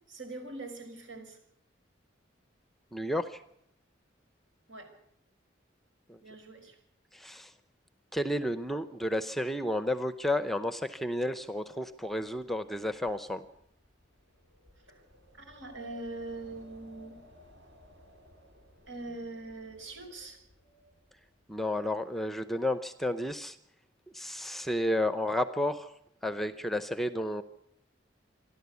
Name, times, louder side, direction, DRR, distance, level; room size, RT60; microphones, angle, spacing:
voice 1, 0.1-1.4 4.7-4.9 6.2-6.8 15.3-17.2 18.9-20.4, right 2 dB, 75° right, 6 dB, 5.3 m, -42 dB
voice 2, 2.9-3.4 6.1-6.2 7.1-7.5 8.1-13.5 21.5-23.6 24.1-25.9 26.2-27.4, left 1 dB, ahead, 12 dB, 0.7 m, -31 dB
Wind, 11.5-21.6, equal, 60° right, 5.7 m, -59 dB
26.5 x 12.0 x 8.3 m, 0.75 s
head